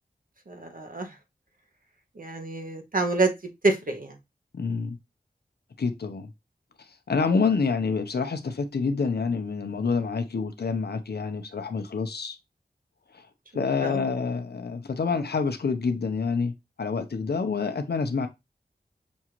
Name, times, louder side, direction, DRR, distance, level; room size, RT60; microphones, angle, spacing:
voice 1, 0.5-1.2 2.2-3.3 3.6-4.2 13.8-14.1, right 3 dB, 55° right, 0.7 m, -27 dB
voice 2, 4.5-5.0 5.8-6.3 7.1-12.4 13.5-18.3, left 5 dB, 75° left, 0.6 m, -27 dB
6.1 x 2.4 x 2.9 m
wide cardioid pair, 60°, 17 cm